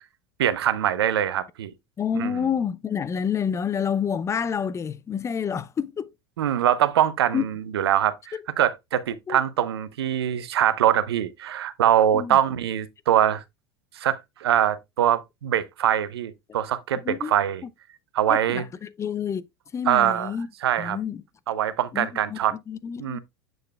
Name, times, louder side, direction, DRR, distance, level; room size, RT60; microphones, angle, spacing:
voice 1, 0.4-1.7 2.1-2.4 6.4-8.2 8.6-13.4 14.0-17.6 18.1-18.6 19.9-20.3 20.6-21.0 21.5-22.5 23.0-23.2, right 11 dB, 75° right, 0.7 m, -23 dB
voice 2, 2.0-6.1 7.3-7.4 8.3-8.4 9.3-9.4 12.1-12.4 17.0-17.3 18.3-19.4 19.7-20.5 20.8-21.2 21.9-22.4 22.7-23.2, left 7 dB, 20° left, 0.4 m, -28 dB
7.8 x 6.5 x 2.2 m
hypercardioid pair, 85°, 13 cm